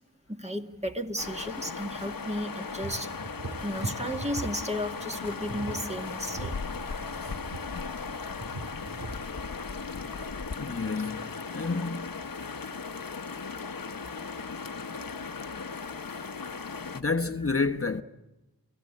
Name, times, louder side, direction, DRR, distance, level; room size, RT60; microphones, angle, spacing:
voice 1, 0.3-3.1 3.6-6.5 15.0-15.1, equal, 15° right, 2.0 m, -34 dB
sound 1, 1.2-17.0, left 5 dB, 60° left, 1.2 m, -37 dB
sound 2, 2.8-9.3, right 3 dB, 75° right, 3.8 m, -41 dB
voice 2, 10.6-12.2 16.9-18.0, left 4 dB, 35° left, 1.1 m, -30 dB
29.0 x 17.5 x 8.6 m
cardioid pair, 45°, 38 cm